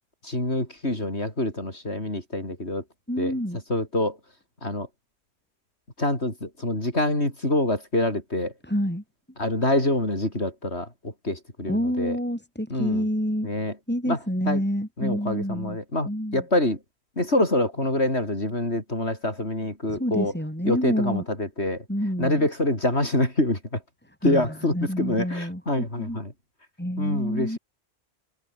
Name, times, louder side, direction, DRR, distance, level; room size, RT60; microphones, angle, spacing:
voice 1, 0.2-2.8 3.2-3.4 3.7-4.2 4.6-4.9 6.0-8.5 9.4-10.9 11.2-12.2 12.7-13.0 13.4-13.7 14.1-14.2 14.5-14.6 15.0-16.8 17.2-20.3 20.7-21.8 22.2-23.8 24.2-26.3 27.0-27.6, left 1 dB, 80° left, 7.2 m, -26 dB
voice 2, 3.1-3.6 8.6-9.0 11.7-13.5 13.9-15.8 16.0-16.4 19.9-21.3 21.9-22.5 24.2-26.2 26.8-27.6, equal, 10° left, 7.6 m, -28 dB
omnidirectional pair, 1.1 m